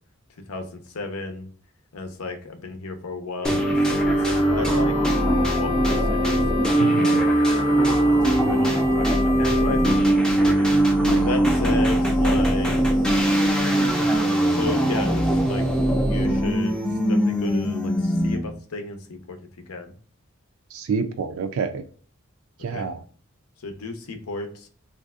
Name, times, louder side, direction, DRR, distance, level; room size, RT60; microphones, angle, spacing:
voice 1, 0.5-1.5 1.9-5.0 5.6-6.4 8.0-10.7 11.2-12.8 14.5-15.7 16.0-16.8 17.1-19.4 19.7-19.9 22.7-22.9 23.6-24.7, left 3 dB, 85° left, 6 dB, 0.7 m, -33 dB
Wind instrument woodwind instrument, 3.4-10.1, left 8 dB, 35° left, 0.7 m, -32 dB
sound 1, 3.4-18.6, right 1 dB, 5° left, 0.4 m, -21 dB
voice 2, 6.8-7.3 11.0-11.3 20.7-21.8 22.6-23.0, right 5 dB, 75° right, 7 dB, 0.4 m, -28 dB
3.3 x 2.5 x 2.3 m, 0.44 s
head